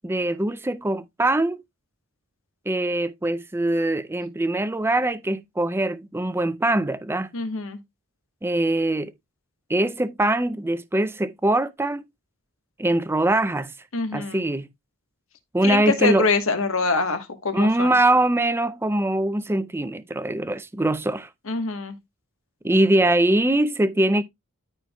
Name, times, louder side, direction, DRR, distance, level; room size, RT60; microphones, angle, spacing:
voice 1, 0.0-1.6 2.7-7.3 8.4-9.1 9.7-12.0 12.8-13.7 14.1-14.7 15.5-16.3 17.5-21.3 22.6-24.2, right 1 dB, 10° right, 0.5 m, -22 dB
voice 2, 7.3-7.8 13.9-14.4 15.6-17.9 21.5-22.0, left 3 dB, 65° left, 1.3 m, -24 dB
13.5 x 4.5 x 2.3 m
head